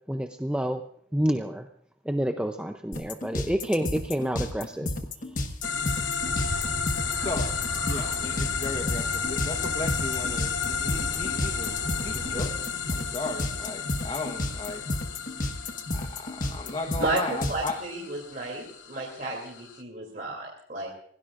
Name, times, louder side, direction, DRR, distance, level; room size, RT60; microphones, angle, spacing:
voice 1, 0.1-0.8 1.1-1.6 2.1-4.9, equal, 5° right, 5 dB, 0.6 m, -28 dB
sound 1, 2.9-17.7, left 1 dB, 45° left, 1.3 m, -31 dB
sound 2, 5.6-19.8, left 7 dB, 70° left, 0.9 m, -33 dB
sound 3, 6.2-12.5, right 1 dB, 80° right, 3.1 m, -37 dB
voice 2, 7.2-7.5 7.9-14.8 15.9-17.8, left 2 dB, 30° left, 4 dB, 1.2 m, -36 dB
voice 3, 17.5-20.9, right 2 dB, 45° right, -3 dB, 2.9 m, -32 dB
26.5 x 17.5 x 2.5 m, 0.64 s
head